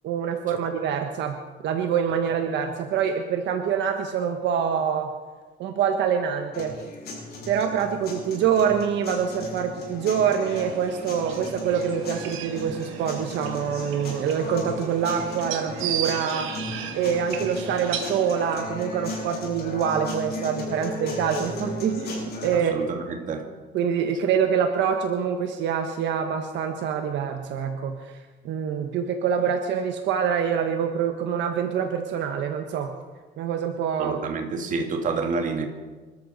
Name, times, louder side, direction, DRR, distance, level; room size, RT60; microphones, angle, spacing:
voice 1, 0.0-1.4 1.6-5.1 5.6-6.8 7.5-16.5 16.9-22.7 23.7-28.2 28.4-33.0 33.4-34.2, right 7 dB, 65° right, 1.3 m, -25 dB
sound 1, 6.5-22.5, left 2 dB, 50° left, 7.4 m, -36 dB
sound 2, 10.5-18.6, right 8 dB, 85° right, 2.0 m, -36 dB
voice 2, 22.5-23.5 34.0-35.6, right 4 dB, 40° right, 2.0 m, -29 dB
26.0 x 13.5 x 4.2 m
cardioid pair, 150°, 20 cm